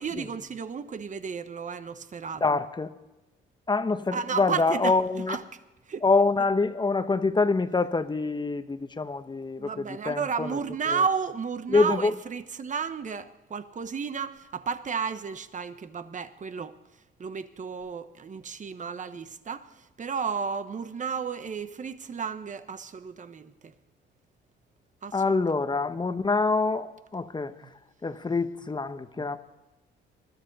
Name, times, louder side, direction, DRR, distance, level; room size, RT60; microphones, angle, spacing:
voice 1, 0.0-2.6 4.1-5.4 5.9-6.0 6.4-6.5 9.6-16.8 17.2-23.7 25.0-25.3 27.6-27.7 28.3-28.4 29.1-29.3, right 6 dB, 40° right, 1.1 m, -33 dB
voice 2, 2.4-2.9 3.7-5.4 6.0-9.7 10.1-10.5 11.7-12.1 25.1-27.5 28.0-29.4, left 3 dB, 20° left, 1.0 m, -25 dB
21.0 x 13.0 x 4.1 m
cardioid pair, 90°, 20 cm